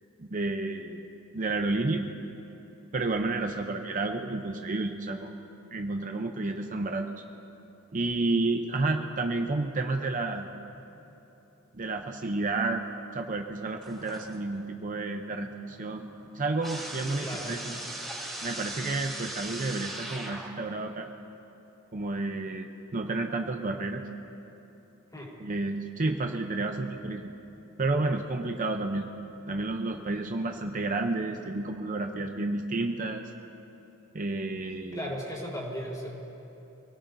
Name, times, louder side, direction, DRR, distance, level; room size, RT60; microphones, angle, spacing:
voice 1, 0.2-1.1 1.3-2.1 2.9-5.3 5.7-7.1 7.9-10.5 11.7-12.8 13.1-16.1 16.3-17.7 18.4-21.1 21.9-24.0 25.4-27.3 27.8-29.1 29.5-33.2 34.1-35.1, right 2 dB, 40° right, 4 dB, 0.7 m, -30 dB
sound 1, 13.8-14.6 15.0-20.8, right 1 dB, ahead, 3.8 m, -40 dB
voice 2, 17.2-17.6 25.1-25.3 34.9-36.1, equal, 20° left, -5 dB, 3.9 m, -36 dB
28.0 x 17.5 x 2.7 m, 3.0 s
head